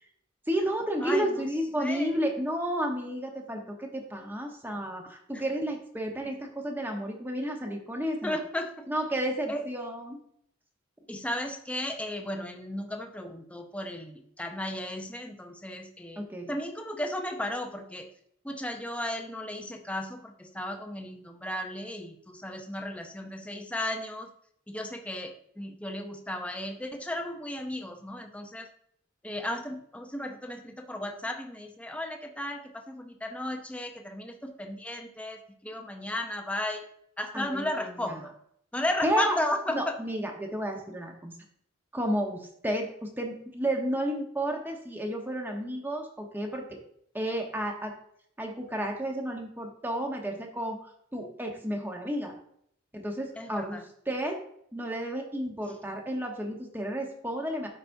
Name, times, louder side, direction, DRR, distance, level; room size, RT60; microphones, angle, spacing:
voice 1, 0.5-8.4 8.9-10.2 16.2-16.5 37.3-38.2 39.0-39.4 39.7-41.3 41.9-46.8 47.1-47.9 48.4-52.3 52.9-53.8 54.1-54.4 54.7-57.7, right 1 dB, 10° right, 1 dB, 1.0 m, -32 dB
voice 2, 1.0-1.4 1.8-2.2 8.2-8.9 9.5-9.6 11.1-16.2 16.5-18.1 18.4-24.3 24.7-28.7 29.2-36.8 37.2-38.3 38.7-40.0 53.4-53.8, left 1 dB, 5° left, 4 dB, 0.6 m, -34 dB
12.5 x 4.9 x 2.7 m, 0.70 s
head